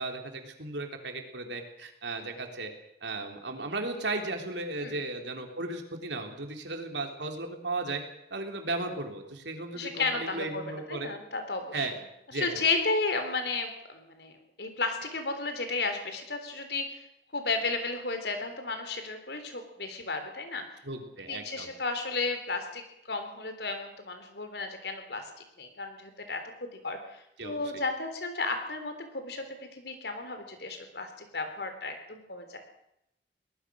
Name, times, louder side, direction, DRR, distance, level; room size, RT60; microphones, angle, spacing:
voice 1, 0.0-2.7 3.0-8.0 8.3-11.1 11.7-11.9 12.3-12.6 20.8-21.7 27.4-27.6, right 2 dB, 90° right, 4 dB, 3.5 m, -35 dB
voice 2, 9.7-10.6 10.9-12.0 12.3-14.3 14.6-17.0 17.3-20.6 21.3-22.8 23.1-25.3 25.6-26.4 26.8-29.5 29.7-32.6, left 3 dB, 75° left, 6 dB, 3.8 m, -33 dB
23.0 x 19.0 x 6.4 m, 0.81 s
head